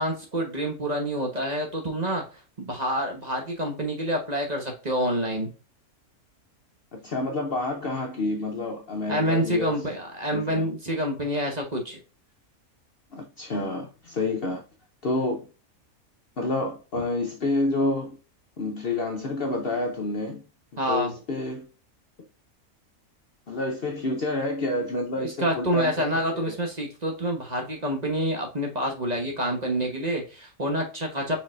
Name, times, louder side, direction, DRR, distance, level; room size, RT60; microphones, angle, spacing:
voice 1, 0.0-2.2 2.6-5.5 9.1-12.0 20.8-21.1 25.1-31.4, equal, 30° right, 1.1 m, -27 dB
voice 2, 6.9-9.8 10.3-10.7 13.1-14.6 15.0-15.5 16.4-18.1 18.6-20.4 20.9-21.7 23.5-26.1 26.3-26.6, left 2 dB, 50° left, 0.8 m, -29 dB
4.9 x 4.0 x 2.5 m
omnidirectional pair, 1.5 m